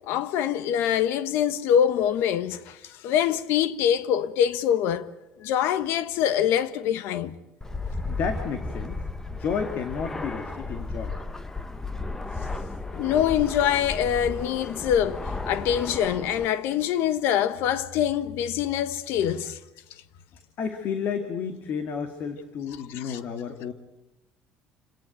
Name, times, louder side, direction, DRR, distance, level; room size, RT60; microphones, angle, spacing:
voice 1, 0.1-5.1 5.4-7.3 12.9-19.6 22.9-23.2, left 9 dB, 75° left, 1.4 m, -24 dB
Fixed-wing aircraft airplane, 7.6-16.5, left 3 dB, 10° left, 1.3 m, -34 dB
voice 2, 8.1-9.0 9.3-11.2 20.6-23.7, left 6 dB, 55° left, 2.2 m, -31 dB
28.0 x 18.5 x 9.1 m
cardioid pair, 130°, 4 cm